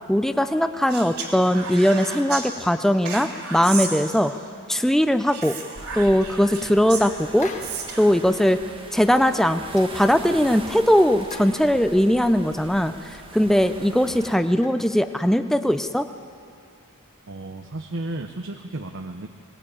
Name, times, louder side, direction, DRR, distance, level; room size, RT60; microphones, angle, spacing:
voice 1, 0.1-4.3 4.7-5.6 5.9-7.5 8.0-8.6 8.9-16.1, equal, ahead, 9 dB, 0.4 m, -20 dB
Speech, 0.9-2.5 3.1-4.5 5.3-8.2, right 5 dB, 75° right, 3.1 m, -34 dB
sound 1, 5.7-14.4, right 2 dB, 25° right, 1.2 m, -41 dB
sound 2, 7.4-8.0 8.3-8.4 8.8-9.1 9.4-10.5 11.0-12.2 12.5-13.3 13.7-13.8 14.1-14.9 15.6-16.4, left 4 dB, 35° left, 1.4 m, -43 dB
voice 2, 17.3-19.3, right 2 dB, 55° right, 6 dB, 0.9 m, -33 dB
19.5 x 19.5 x 8.6 m, 2.4 s
head